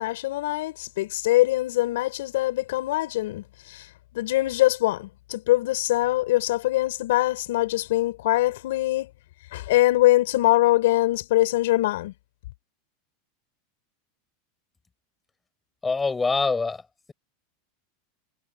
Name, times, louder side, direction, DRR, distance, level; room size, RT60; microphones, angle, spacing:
voice 1, 0.0-3.8 4.1-9.1 9.5-12.1, left 17 dB, 75° left, 7.0 m, -23 dB
voice 2, 15.8-16.8, left 4 dB, 10° left, 7.1 m, -24 dB
supercardioid pair, 155°, 0 cm